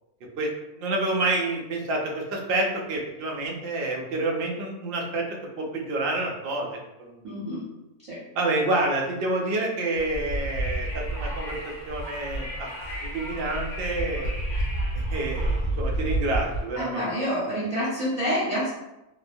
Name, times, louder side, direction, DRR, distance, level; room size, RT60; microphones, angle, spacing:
voice 1, 0.8-7.5 8.3-12.7 13.0-14.3 14.9-17.1, right 2 dB, 70° right, -1 dB, 0.5 m, -28 dB
voice 2, 7.2-7.6 8.1-8.2 16.8-18.7, equal, 30° right, -10 dB, 0.7 m, -27 dB
Wind, 9.9-16.6, right 1 dB, 80° left, 1.3 m, -30 dB
2.9 x 2.1 x 2.5 m, 0.91 s
omnidirectional pair, 1.5 m